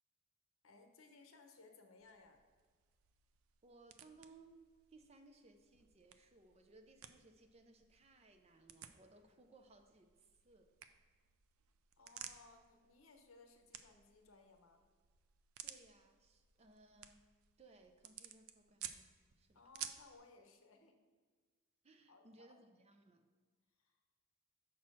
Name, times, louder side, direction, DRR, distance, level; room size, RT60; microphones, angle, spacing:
voice 1, 0.6-2.4 12.0-14.8 19.5-21.0 22.1-22.6 23.8-24.0, left 3 dB, 70° left, 5 dB, 0.9 m, -62 dB
sound 1, 2.0-20.2, right 10 dB, 80° right, 0.4 m, -56 dB
voice 2, 3.6-4.6 4.9-10.7 15.6-17.2 17.6-19.1 19.4-19.7 21.8-23.3, right 2 dB, 30° right, 6 dB, 0.5 m, -64 dB
6.2 x 4.3 x 6.0 m, 1.5 s
head